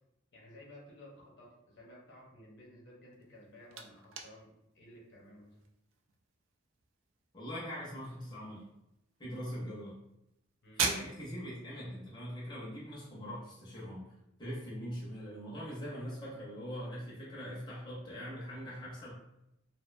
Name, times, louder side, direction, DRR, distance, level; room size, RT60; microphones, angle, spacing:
voice 1, 0.3-5.6 10.6-10.9, left 1 dB, 65° left, -4 dB, 0.8 m, -55 dB
sound 1, 3.1-13.9, right 5 dB, 75° right, 0.3 m, -43 dB
voice 2, 7.3-8.6 9.2-10.0 10.8-14.1 14.4-19.1, equal, 25° left, -7 dB, 0.6 m, -42 dB
2.4 x 2.1 x 2.4 m, 0.85 s
head